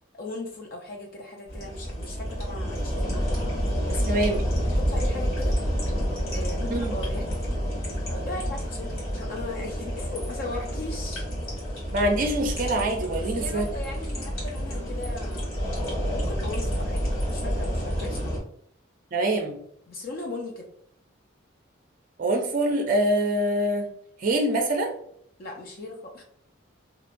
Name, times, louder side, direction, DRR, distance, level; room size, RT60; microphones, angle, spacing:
voice 1, 0.2-3.4 3.9-4.4 4.6-5.6 6.3-7.3 8.1-11.2 13.2-15.5 16.2-17.0 17.3-18.4 19.9-20.7 25.4-26.2, left 2 dB, 45° left, 1 dB, 0.4 m, -38 dB
sound 1, 1.5-18.4, equal, 70° left, 1.5 m, -29 dB
voice 2, 4.1-4.4 6.7-6.9 11.9-13.6 19.1-19.6 22.2-23.9 24.2-24.9, right 1 dB, 40° right, 3 dB, 0.4 m, -24 dB
2.9 x 2.2 x 2.5 m, 0.66 s
head